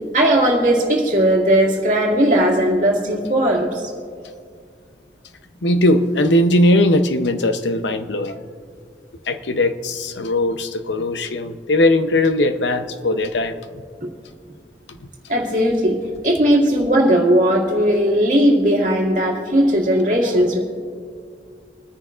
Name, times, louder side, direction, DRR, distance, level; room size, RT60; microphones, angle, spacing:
voice 1, 0.0-3.9 15.3-16.0 16.2-20.6, right 1 dB, 45° right, -2 dB, 2.2 m, -17 dB
voice 2, 5.6-8.4 9.3-13.5, left 1 dB, 85° left, 9 dB, 0.7 m, -19 dB
26.0 x 9.8 x 2.5 m, 2.1 s
head